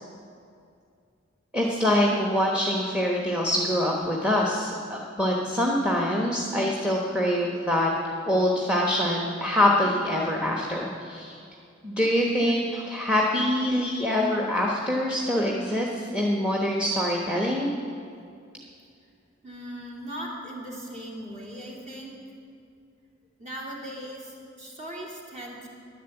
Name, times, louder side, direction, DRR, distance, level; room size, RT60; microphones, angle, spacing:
voice 1, 1.5-7.9 8.3-11.4 11.8-17.7, left 1 dB, 5° right, -2 dB, 1.1 m, -25 dB
voice 2, 19.4-22.2 23.4-25.7, equal, 40° right, -3 dB, 2.7 m, -38 dB
11.0 x 11.0 x 7.9 m, 2.4 s
head